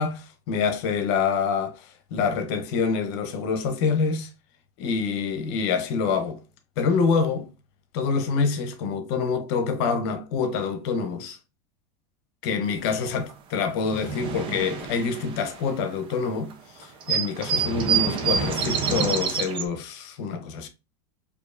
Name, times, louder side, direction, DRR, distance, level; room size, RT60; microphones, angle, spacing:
voice 1, 0.0-4.3 4.8-6.4 6.8-7.5 7.9-11.4 12.4-13.2 13.5-20.7, left 5 dB, 60° left, 0.9 m, -26 dB
sound 1, 13.3-13.4 13.6-16.1 16.5-16.6 16.8-19.6, right 6 dB, 35° right, 0.8 m, -27 dB
4.5 x 2.8 x 2.5 m
supercardioid pair, 130°, 15 cm